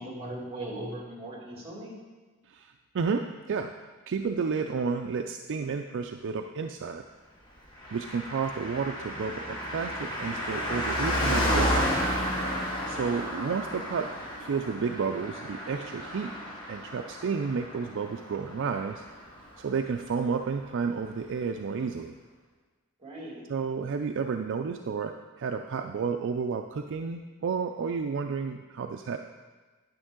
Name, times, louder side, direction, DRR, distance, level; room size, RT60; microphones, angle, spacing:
voice 1, 0.0-1.9 12.8-13.1 23.0-23.4, right 1 dB, 30° right, -2 dB, 2.3 m, -39 dB
voice 2, 2.5-3.7 4.1-7.0 7.9-11.9 12.4-14.1 14.4-16.3 16.7-19.0 19.6-22.2 23.5-29.2, right 5 dB, 60° right, 5 dB, 0.4 m, -31 dB
Car passing by, 7.8-19.6 19.9-20.0, equal, 20° left, 2.0 m, -32 dB
9.8 x 8.8 x 3.7 m, 1.3 s
head